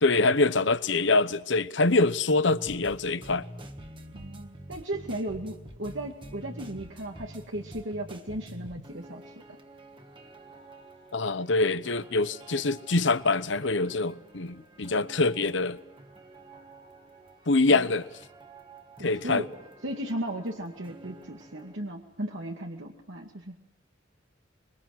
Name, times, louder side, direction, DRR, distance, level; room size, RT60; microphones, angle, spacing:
voice 1, 0.0-3.5 11.1-15.8 17.5-18.1 19.0-19.4, left 3 dB, 65° left, 1.0 m, -24 dB
sound 1, 2.5-21.8, right 1 dB, 25° right, 1.7 m, -48 dB
voice 2, 4.1-9.3 17.7-17.9 19.0-19.5 19.8-23.6, right 1 dB, 80° right, 2.3 m, -36 dB
25.5 x 23.0 x 7.9 m
head